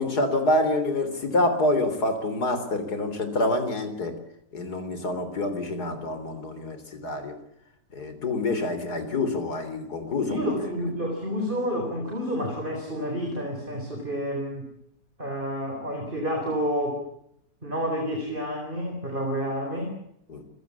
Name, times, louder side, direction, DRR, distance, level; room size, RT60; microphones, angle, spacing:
voice 1, 0.0-4.2 4.5-7.4 7.9-10.6 20.3-20.4, left 2 dB, 65° left, 9 dB, 4.0 m, -27 dB
voice 2, 10.3-14.7 15.2-17.0 17.6-20.0, equal, 30° right, 2 dB, 4.4 m, -29 dB
27.5 x 17.0 x 8.4 m, 0.77 s
omnidirectional pair, 1.8 m